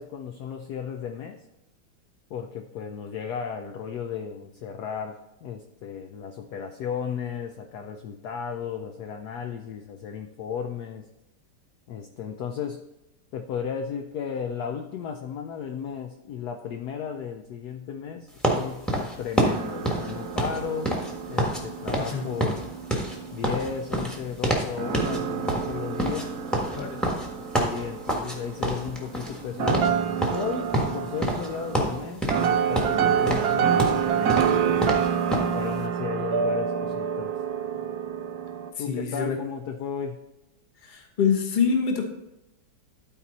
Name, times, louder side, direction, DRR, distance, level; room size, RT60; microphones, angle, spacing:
voice 1, 0.0-1.4 2.3-11.1 11.9-12.8 13.3-21.0 21.3-22.6 23.3-26.4 27.5-30.0 30.3-34.8 35.5-37.4 37.8-37.9 38.8-40.2, left 7 dB, 70° left, 5 dB, 0.9 m, -34 dB
sound 1, 18.4-21.6 21.9-22.1 22.4-24.7 24.9-25.2 25.5-28.4 28.6-29.4 29.7-29.9 30.2-31.5 31.7-32.5 32.8-35.5, right 1 dB, ahead, 1.0 m, -27 dB
sound 2, 19.5-24.3 24.8-38.7, right 7 dB, 70° right, 0.9 m, -28 dB
voice 2, 38.7-39.4 40.8-42.0, left 6 dB, 35° left, 2 dB, 0.9 m, -25 dB
12.5 x 4.5 x 4.1 m, 0.92 s
omnidirectional pair, 2.3 m